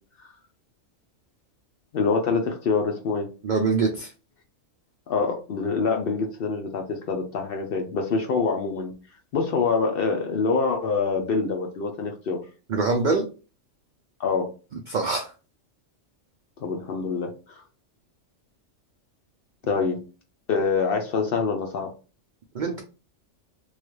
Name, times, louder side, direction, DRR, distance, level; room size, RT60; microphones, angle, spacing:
voice 1, 1.9-3.3 5.1-8.9 9.3-12.4 14.2-14.5 16.6-17.6 19.7-20.0 20.5-21.9, left 4 dB, 60° left, 3 dB, 0.6 m, -25 dB
voice 2, 3.4-4.1 12.7-13.2 14.9-15.3 22.5-22.8, right 4 dB, 70° right, 3 dB, 0.4 m, -24 dB
3.1 x 2.3 x 3.1 m, 0.34 s
omnidirectional pair, 1.3 m